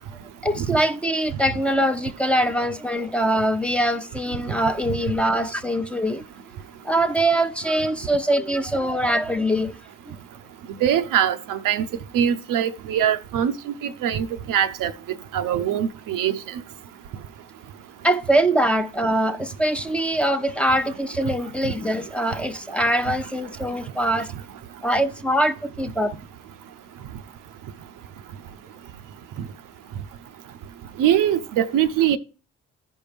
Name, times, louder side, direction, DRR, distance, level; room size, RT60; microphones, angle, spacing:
voice 1, 0.4-6.2 6.5-9.7 10.1-10.2 18.0-24.3 24.8-26.2, right 1 dB, 5° left, 0.7 m, -23 dB
voice 2, 10.8-11.8 12.1-13.5 13.8-14.9 15.3-16.4 31.0-32.2, right 10 dB, 65° right, 0.6 m, -22 dB
14.0 x 5.2 x 3.4 m
hypercardioid pair, 45°, 35 cm